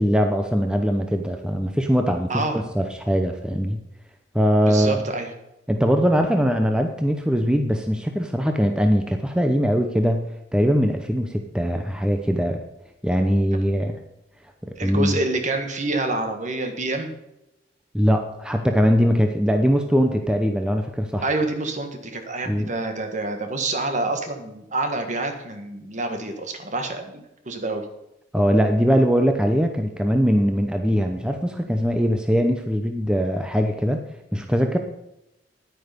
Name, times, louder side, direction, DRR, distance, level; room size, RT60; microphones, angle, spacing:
voice 1, 0.0-3.8 4.3-5.0 5.7-12.6 13.0-14.0 14.8-15.1 17.9-21.2 22.5-22.7 28.3-34.0 34.3-34.8, equal, 5° right, 5 dB, 0.7 m, -21 dB
voice 2, 2.3-2.6 4.7-5.3 14.8-17.1 21.2-27.8, right 2 dB, 40° right, 6 dB, 1.6 m, -27 dB
10.0 x 9.6 x 5.2 m, 0.89 s
head